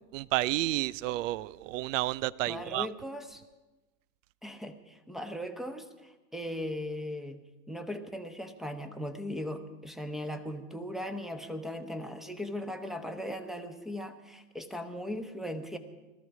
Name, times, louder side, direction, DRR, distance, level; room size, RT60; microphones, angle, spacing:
voice 1, 0.1-2.9, right 17 dB, 60° right, 21 dB, 0.5 m, -31 dB
voice 2, 2.5-3.4 4.4-15.8, equal, ahead, 8 dB, 1.0 m, -38 dB
19.5 x 13.5 x 4.8 m, 1.1 s
hypercardioid pair, 120°, 44 cm